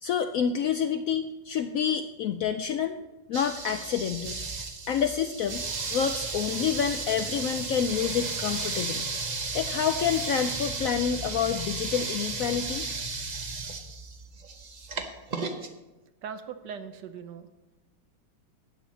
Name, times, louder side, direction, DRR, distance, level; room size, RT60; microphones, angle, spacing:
voice 1, 0.0-3.0 3.3-4.4 4.9-5.6 5.9-9.0 9.5-12.9, left 8 dB, 75° left, 8 dB, 0.8 m, -28 dB
sound 1, 3.3-15.7, right 3 dB, 40° right, 0.6 m, -34 dB
voice 2, 16.2-17.5, right 7 dB, 75° right, 9 dB, 1.4 m, -40 dB
12.5 x 9.0 x 4.1 m, 1.1 s
omnidirectional pair, 1.9 m